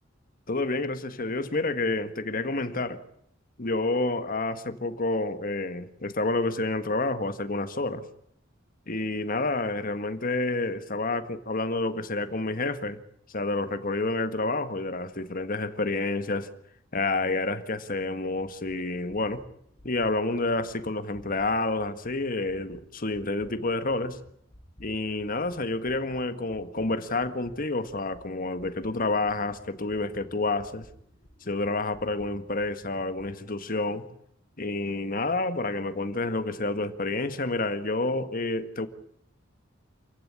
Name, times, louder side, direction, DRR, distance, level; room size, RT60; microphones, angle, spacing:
voice 1, 0.5-3.0 3.6-8.0 8.9-13.0 13.3-16.5 16.9-19.4 19.8-24.2 24.8-30.8 31.4-34.1 34.6-38.9, left 2 dB, 45° left, 10 dB, 1.7 m, -29 dB
sound 1, 22.0-25.5 25.8-33.3, equal, 30° left, 7.7 m, -55 dB
28.0 x 15.0 x 9.9 m, 0.73 s
head